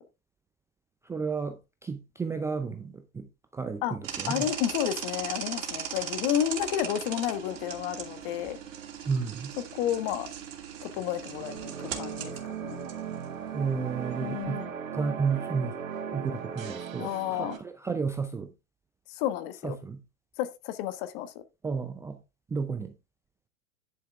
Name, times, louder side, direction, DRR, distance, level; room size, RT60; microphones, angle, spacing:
voice 1, 1.1-3.3 3.5-4.5 9.1-9.5 13.5-14.6 14.9-15.7 16.1-18.5 19.6-20.0 21.6-22.2 22.5-22.9, right 5 dB, 5° right, 0.4 m, -32 dB
sound 1, 4.0-14.4, right 8 dB, 65° right, 2.7 m, -39 dB
voice 2, 4.3-8.6 9.7-10.3 10.8-12.9 14.2-14.7 17.0-17.6 19.1-19.8 20.4-21.3, left 11 dB, 45° left, 1.3 m, -31 dB
sound 2, 11.1-17.6, right 8 dB, 80° right, 1.7 m, -37 dB
10.5 x 5.7 x 3.5 m
hypercardioid pair, 110°, 40 cm